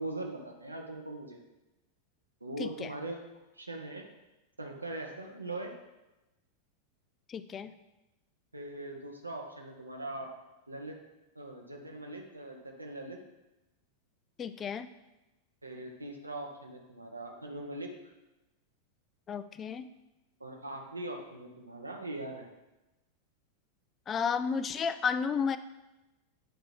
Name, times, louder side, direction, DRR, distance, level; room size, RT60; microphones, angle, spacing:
voice 1, 0.0-1.4 2.4-3.2 3.6-4.0 4.6-5.7 8.5-10.3 10.7-11.0 11.3-13.2 15.6-17.9 20.4-22.5, right 2 dB, 80° right, 2 dB, 1.1 m, -41 dB
voice 2, 2.6-2.9 7.3-7.7 14.4-14.9 19.3-19.9 24.1-25.6, left 6 dB, 25° left, 12 dB, 0.4 m, -32 dB
8.9 x 3.7 x 4.8 m, 1.0 s
figure-of-eight pair, 90°, 0 cm